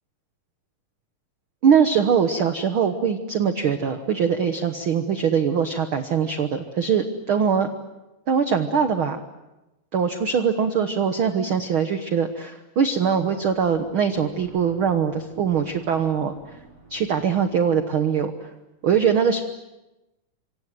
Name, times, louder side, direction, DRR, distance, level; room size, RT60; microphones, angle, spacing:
voice 1, 1.6-7.7 8.3-9.2 9.9-16.6 16.9-18.5 18.8-19.4, right 7 dB, 70° right, 8 dB, 1.2 m, -22 dB
sound 1, 13.2-18.1, equal, 50° right, 6.7 m, -46 dB
28.0 x 25.0 x 7.7 m, 1.0 s
omnidirectional pair, 4.1 m